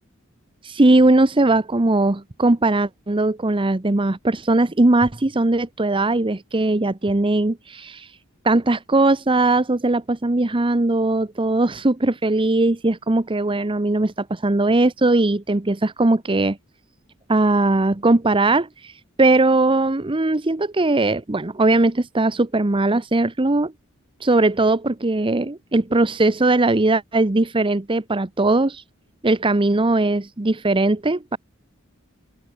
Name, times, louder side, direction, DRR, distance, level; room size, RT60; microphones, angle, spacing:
voice 1, 0.6-8.1 8.4-16.6 17.3-18.9 19.2-23.7 24.2-28.8 29.2-31.4, right 2 dB, 25° right, 0.8 m, -19 dB
head